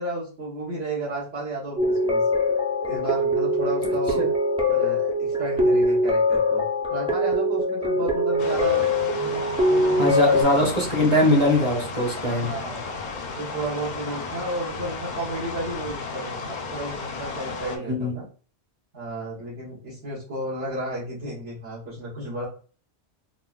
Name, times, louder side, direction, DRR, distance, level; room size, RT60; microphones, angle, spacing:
voice 1, 0.0-2.2 2.8-4.2 4.7-6.6 6.9-10.3 12.2-12.8 13.3-18.2 18.9-22.4, right 2 dB, 90° right, -10 dB, 1.6 m, -33 dB
sound 1, 1.8-10.4, left 1 dB, 10° right, 0.4 m, -22 dB
sound 2, 8.4-17.8, left 4 dB, 55° left, 0.5 m, -34 dB
voice 2, 10.0-12.5 17.8-18.1, left 1 dB, 30° right, -2 dB, 0.8 m, -21 dB
4.0 x 2.1 x 2.3 m, 0.39 s
omnidirectional pair, 1.2 m